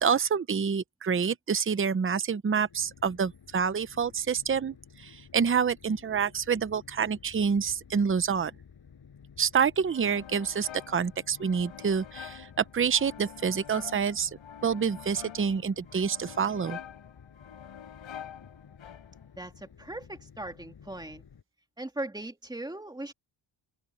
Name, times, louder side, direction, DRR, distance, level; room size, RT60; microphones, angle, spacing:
voice 1, 0.0-8.5 9.4-14.3 14.6-16.8, right 6 dB, 25° right, 0.8 m, -27 dB
sound 1, 2.6-21.4, left 7 dB, 50° left, 6.6 m, -53 dB
sound 2, 9.9-19.4, left 9 dB, 75° left, 5.1 m, -46 dB
voice 2, 19.4-21.2 21.8-23.1, right 1 dB, 10° right, 2.2 m, -39 dB
open air
wide cardioid pair, 125°, 47 cm